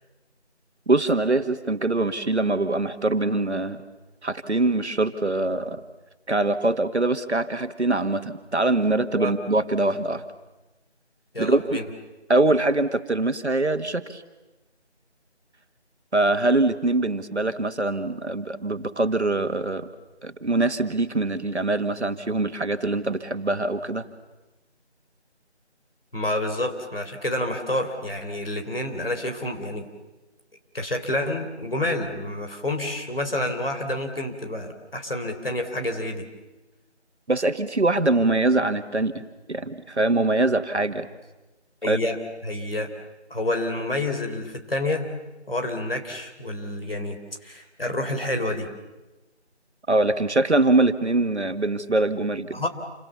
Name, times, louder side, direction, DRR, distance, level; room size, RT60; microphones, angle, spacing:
voice 1, 0.9-3.8 4.2-5.8 6.3-10.2 11.4-11.8 12.3-14.2 16.1-19.9 20.2-24.1 37.3-39.2 39.5-41.1 41.9-42.0 49.9-52.6, right 2 dB, 75° right, 9 dB, 1.9 m, -23 dB
voice 2, 11.3-11.8 26.1-29.9 30.7-36.2 41.8-42.2 42.4-42.9 43.3-45.1 45.5-47.2 47.4-48.7 52.5-52.7, left 1 dB, 55° left, 4 dB, 3.9 m, -28 dB
28.5 x 25.0 x 7.1 m, 1.1 s
figure-of-eight pair, 175°, 34 cm